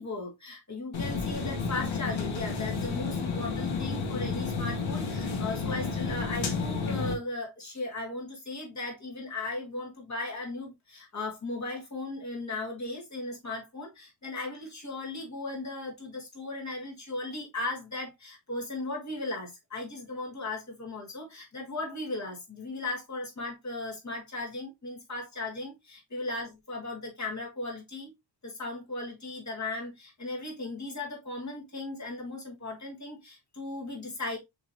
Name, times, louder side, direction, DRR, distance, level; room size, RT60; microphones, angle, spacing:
voice 1, 0.0-28.1 28.4-34.4, left 2 dB, 35° left, 1.8 m, -37 dB
sound 1, 0.9-7.1, left 4 dB, 75° left, 1.2 m, -31 dB
6.5 x 3.1 x 2.6 m
wide cardioid pair, 160°, 47 cm